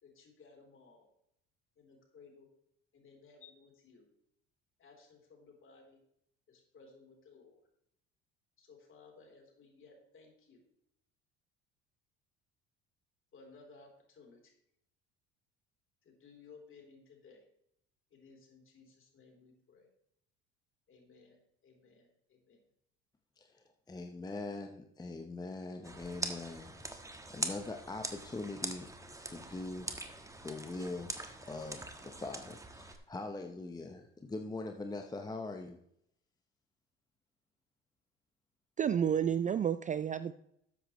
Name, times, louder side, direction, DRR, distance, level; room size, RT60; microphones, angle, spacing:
voice 1, 0.0-1.1 1.8-2.5 2.9-4.1 4.8-6.0 6.5-7.6 8.6-10.6 13.3-14.5 16.0-17.4 18.1-19.9 20.9-21.4 21.6-22.6, left 4 dB, 45° left, 1 dB, 3.6 m, -59 dB
voice 2, 23.4-26.8 27.3-28.9 29.2-29.9 30.4-31.1 31.4-35.8, left 2 dB, 15° left, 4 dB, 0.8 m, -42 dB
sound 1, 25.8-33.0, right 2 dB, 10° right, 1.3 m, -43 dB
voice 3, 38.8-40.3, right 8 dB, 25° right, 14 dB, 0.3 m, -30 dB
12.5 x 8.0 x 3.1 m, 0.76 s
supercardioid pair, 75°, 29 cm